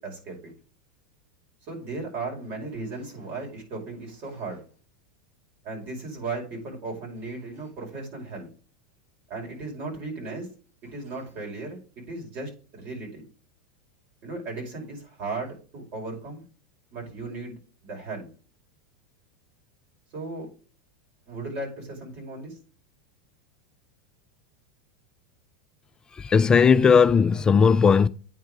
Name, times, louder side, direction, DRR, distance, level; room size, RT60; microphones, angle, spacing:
voice 1, 0.0-0.4 1.7-4.6 5.6-8.5 9.3-10.5 10.8-13.2 14.2-16.4 16.9-18.3 20.1-20.5 21.3-22.6, right 3 dB, 50° right, 5.1 m, -36 dB
voice 2, 26.1-28.1, left 6 dB, 20° left, 0.3 m, -17 dB
9.0 x 4.5 x 5.0 m
hypercardioid pair, 105°, 4 cm